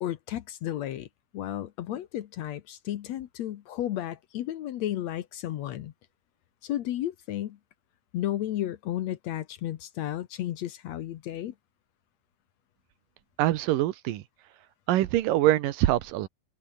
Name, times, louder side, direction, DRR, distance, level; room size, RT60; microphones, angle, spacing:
voice 1, 0.0-1.1 1.3-5.9 6.6-7.6 8.1-11.5, left 12 dB, 65° left, 1.9 m, -33 dB
voice 2, 13.4-14.2 14.9-16.3, right 14 dB, 85° right, 2.8 m, -24 dB
open air
omnidirectional pair, 3.8 m